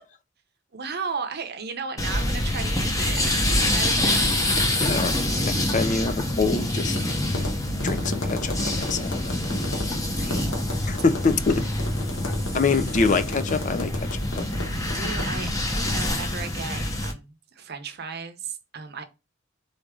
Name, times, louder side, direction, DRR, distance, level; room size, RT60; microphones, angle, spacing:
voice 1, 0.7-4.7 9.8-10.5 14.8-15.5 15.8-19.0, right 5 dB, 55° right, 0.7 m, -35 dB
sound 1, 2.0-17.1, left 1 dB, 15° left, 0.8 m, -26 dB
voice 2, 4.8-5.1 5.4-7.0 7.8-9.3 10.9-11.7 12.5-14.5, left 4 dB, 40° left, 0.4 m, -25 dB
Tap, 6.9-16.2, left 2 dB, 70° left, 1.1 m, -36 dB
3.9 x 3.4 x 3.6 m
head